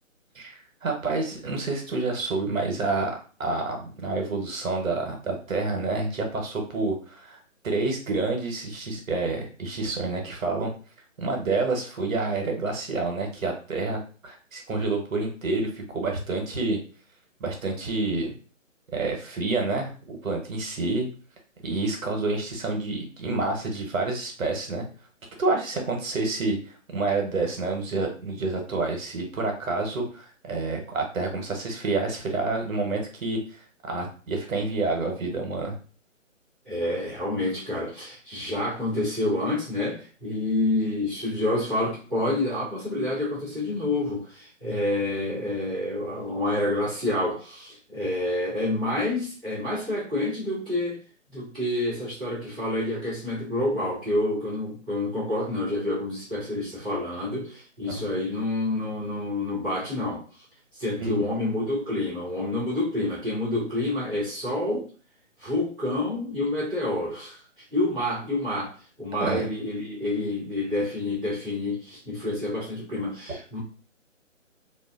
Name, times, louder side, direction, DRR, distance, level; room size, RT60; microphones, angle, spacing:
voice 1, 0.3-3.1 3.4-7.4 7.6-10.7 11.2-14.0 14.2-16.8 17.4-18.3 18.9-19.9 20.2-21.1 21.6-24.8 25.4-26.6 26.9-35.7 57.8-58.1 61.0-61.1 69.2-69.5, right 3 dB, 85° right, 2 dB, 1.0 m, -28 dB
voice 2, 36.6-51.0 51.3-60.4 60.7-64.9 65.4-73.6, left 1 dB, 5° left, -16 dB, 0.6 m, -28 dB
2.7 x 2.3 x 2.4 m, 0.38 s
hypercardioid pair, 160°, 39 cm